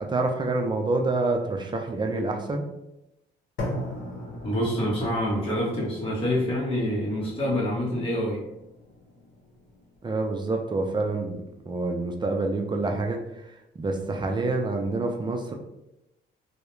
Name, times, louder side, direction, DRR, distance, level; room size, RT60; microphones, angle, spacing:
voice 1, 0.0-2.7 10.0-11.4 11.7-15.5, right 2 dB, 25° right, 2 dB, 0.4 m, -27 dB
sound 1, 3.6-11.6, left 1 dB, 70° left, 0.8 m, -40 dB
voice 2, 4.4-8.4, equal, 25° left, -5 dB, 0.8 m, -26 dB
2.3 x 2.1 x 3.0 m, 0.89 s
cardioid pair, 90°, 20 cm